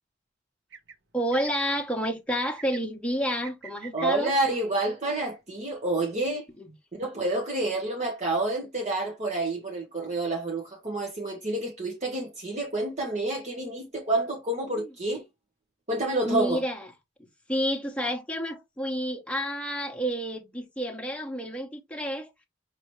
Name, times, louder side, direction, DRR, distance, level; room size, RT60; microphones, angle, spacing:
sound 1, 0.7-1.0 1.3-1.7 2.3-2.8 3.3-4.5, right 6 dB, 80° right, 0.9 m, -45 dB
voice 1, 1.1-4.3 14.8-14.9 16.2-16.9 17.5-22.3, equal, 5° left, 1.1 m, -29 dB
voice 2, 3.9-6.4 7.0-15.2 15.9-16.6, right 2 dB, 35° right, 1.1 m, -29 dB
5.7 x 2.9 x 3.2 m
head